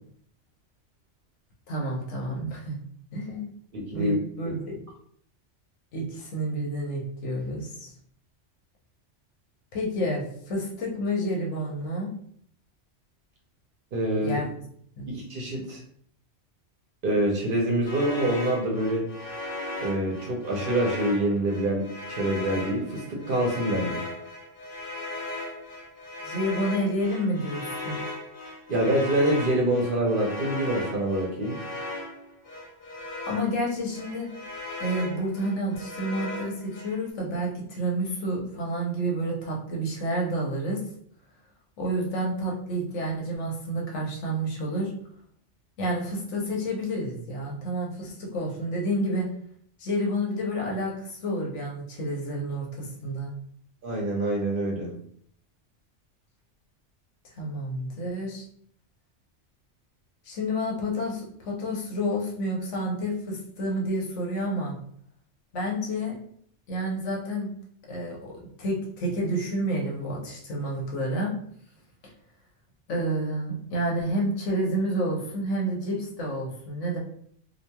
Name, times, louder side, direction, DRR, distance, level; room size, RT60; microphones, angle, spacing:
voice 1, 1.7-2.8 3.1-3.5 3.9-4.8 5.9-7.9 9.7-12.1 14.2-14.5 15.0-15.1 26.2-28.0 33.3-34.3 34.8-40.8 41.8-44.9 45.8-49.3 49.8-53.3 57.4-58.5 60.3-64.8 65.5-66.1 66.7-67.5 67.9-71.3 72.9-77.0, equal, 80° left, -2 dB, 1.1 m, -29 dB
voice 2, 3.7-4.2 13.9-14.4 15.1-15.8 17.0-19.0 19.8-24.0 28.7-31.6 53.8-54.9, right 1 dB, 55° right, -1 dB, 0.7 m, -26 dB
sound 1, 17.8-33.6 33.9-37.0, left 2 dB, 55° left, 0.7 m, -37 dB
2.9 x 2.3 x 2.2 m, 0.63 s
omnidirectional pair, 1.2 m